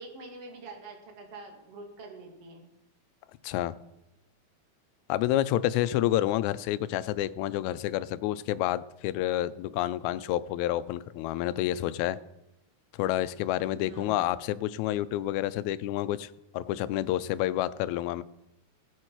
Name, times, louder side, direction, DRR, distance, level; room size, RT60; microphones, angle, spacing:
voice 1, 0.0-2.7 13.7-14.3, right 3 dB, 50° right, 1 dB, 2.9 m, -45 dB
voice 2, 3.4-3.8 5.1-12.2 13.0-18.2, left 14 dB, 80° left, 14 dB, 1.8 m, -29 dB
18.5 x 7.8 x 4.5 m, 0.91 s
omnidirectional pair, 3.6 m